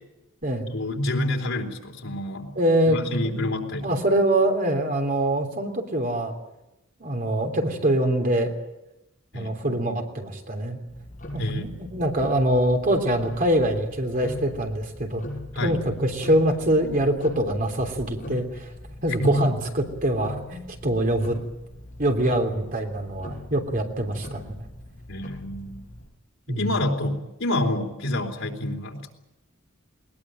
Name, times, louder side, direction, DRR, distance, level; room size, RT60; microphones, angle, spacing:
voice 1, 0.7-2.6 2.9-3.9 9.3-10.0 11.4-11.7 15.5-15.8 19.2-19.4 25.1-25.8 26.5-29.1, left 1 dB, 80° left, 2 dB, 3.7 m, -28 dB
voice 2, 2.5-3.0 3.2-3.4 3.8-6.3 7.0-8.5 9.3-10.8 11.3-15.2 15.6-18.7 19.0-21.4 22.0-24.6 26.5-26.6, right 1 dB, 45° right, 3 dB, 3.4 m, -24 dB
Tick-tock, 10.9-26.1, left 1 dB, 40° left, 7.1 m, -41 dB
21.0 x 20.5 x 9.0 m, 0.95 s
head